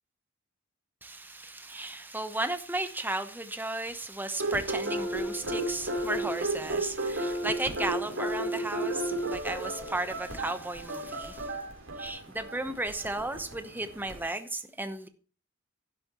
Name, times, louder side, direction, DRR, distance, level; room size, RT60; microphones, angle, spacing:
voice 1, 1.0-11.5 12.0-15.1, right 2 dB, 10° right, 0.9 m, -34 dB
sound 1, 4.4-14.2, right 1 dB, 70° right, 3.7 m, -33 dB
11.5 x 11.0 x 3.0 m
head